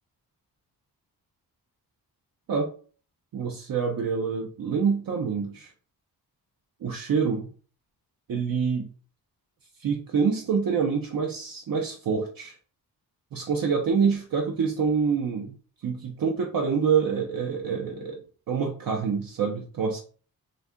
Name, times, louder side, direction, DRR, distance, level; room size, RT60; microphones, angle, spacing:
voice 1, 3.3-5.7 6.8-7.5 8.3-8.9 9.8-12.5 13.3-15.5 15.8-18.2 18.5-20.0, right 6 dB, 60° right, 2 dB, 0.7 m, -26 dB
3.8 x 2.7 x 3.6 m, 0.41 s
wide cardioid pair, 145°, 38 cm